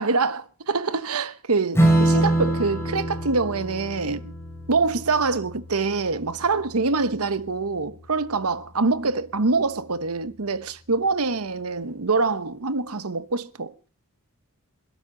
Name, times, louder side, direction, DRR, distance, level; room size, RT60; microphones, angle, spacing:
voice 1, 0.0-4.3 4.7-13.7, right 4 dB, 80° right, 1.1 m, -25 dB
Strum, 1.7-8.6, right 1 dB, 10° left, 5.9 m, -26 dB
27.0 x 12.5 x 4.0 m
head